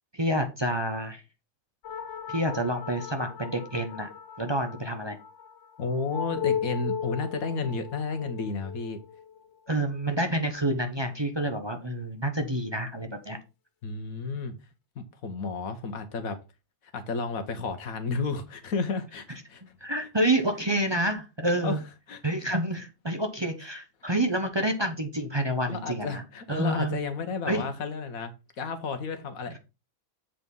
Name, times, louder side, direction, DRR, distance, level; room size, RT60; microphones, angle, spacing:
voice 1, 0.1-1.2 2.3-4.1 4.4-5.2 9.7-13.4 19.8-21.8 22.2-26.2 26.5-27.0 27.5-27.7, right 1 dB, 20° right, 0.9 m, -28 dB
sound 1, 1.8-10.7, left 8 dB, 65° left, 0.8 m, -37 dB
voice 2, 5.8-9.0 13.8-14.5 14.9-16.4 16.9-19.6 21.6-21.8 22.1-22.5 25.7-29.6, left 4 dB, 85° left, 1.6 m, -32 dB
7.7 x 4.3 x 5.3 m
omnidirectional pair, 1.4 m